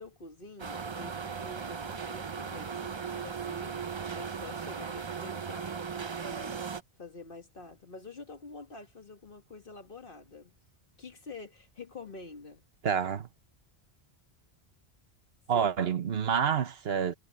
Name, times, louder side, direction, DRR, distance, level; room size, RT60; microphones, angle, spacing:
voice 1, 0.0-10.5 11.0-12.6 15.5-15.7, left 3 dB, 55° left, 1.8 m, -47 dB
Ski resort-Inside the cable car terminal, 0.6-6.8, right 6 dB, 30° right, 0.6 m, -37 dB
voice 2, 12.8-13.3 15.5-17.1, right 7 dB, 70° right, 1.3 m, -28 dB
omnidirectional pair, 1.1 m